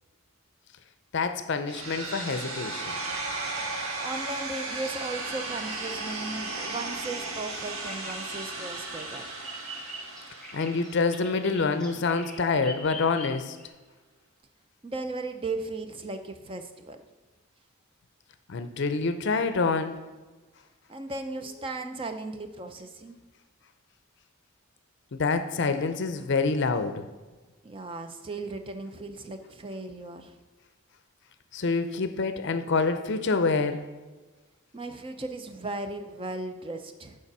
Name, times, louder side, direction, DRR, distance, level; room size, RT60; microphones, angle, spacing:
voice 1, 1.1-2.9 10.5-13.6 18.5-20.0 25.1-27.1 31.5-33.8, left 4 dB, 55° left, 10 dB, 0.5 m, -27 dB
sound 1, 1.7-11.7, right 3 dB, 75° right, 1.4 m, -35 dB
voice 2, 4.0-9.4 14.8-17.0 20.9-23.2 27.6-30.3 34.7-37.2, right 2 dB, 25° right, 7 dB, 0.5 m, -36 dB
Bird vocalization bird call bird song, 7.1-13.7, left 1 dB, 5° left, 0.8 m, -43 dB
7.0 x 4.8 x 6.0 m, 1.3 s
head